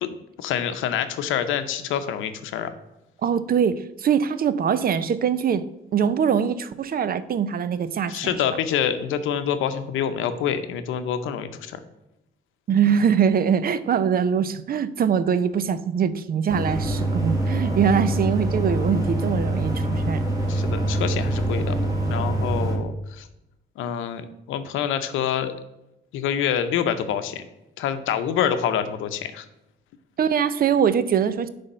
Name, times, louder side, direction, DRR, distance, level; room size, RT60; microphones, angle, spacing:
voice 1, 0.0-2.7 8.1-11.8 20.5-21.8 22.1-23.3 23.8-25.5 26.1-27.4 27.8-29.5, left 9 dB, 90° left, 10 dB, 0.7 m, -26 dB
voice 2, 3.2-5.7 5.9-8.4 12.7-20.2 30.2-31.5, right 7 dB, 50° right, 14 dB, 0.6 m, -22 dB
sound 1, 16.5-22.8, right 1 dB, 15° right, 2.5 m, -24 dB
9.6 x 3.5 x 5.5 m, 0.93 s
cardioid pair, 90°, 20 cm